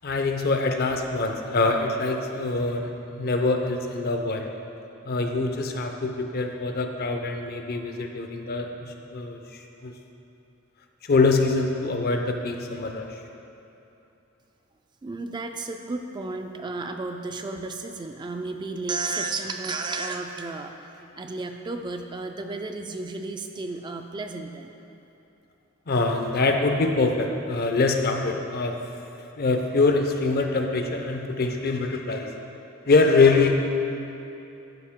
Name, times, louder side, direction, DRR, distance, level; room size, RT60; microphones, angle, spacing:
voice 1, 0.0-4.5 5.0-9.9 11.0-13.1 25.9-28.8 29.4-32.3 32.9-33.5, left 3 dB, 50° left, 4 dB, 0.6 m, -24 dB
voice 2, 15.0-24.7, right 3 dB, 20° right, 5 dB, 0.3 m, -33 dB
11.5 x 4.9 x 3.6 m, 2.9 s
head